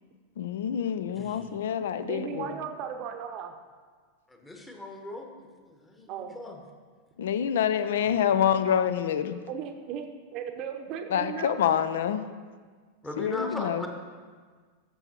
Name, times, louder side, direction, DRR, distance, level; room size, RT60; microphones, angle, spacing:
voice 1, 0.4-2.5 7.2-9.4 11.1-12.3 13.2-13.9, left 9 dB, 60° left, 12 dB, 0.4 m, -27 dB
voice 2, 1.1-1.5 2.4-2.5 4.3-6.6 8.1-8.2 13.0-13.9, left 2 dB, 10° left, 2 dB, 1.1 m, -39 dB
voice 3, 2.0-3.5 6.1-6.4 9.5-11.6, right 7 dB, 40° right, 6 dB, 0.8 m, -36 dB
13.5 x 6.9 x 2.9 m, 1.5 s
figure-of-eight pair, 90°, 0 cm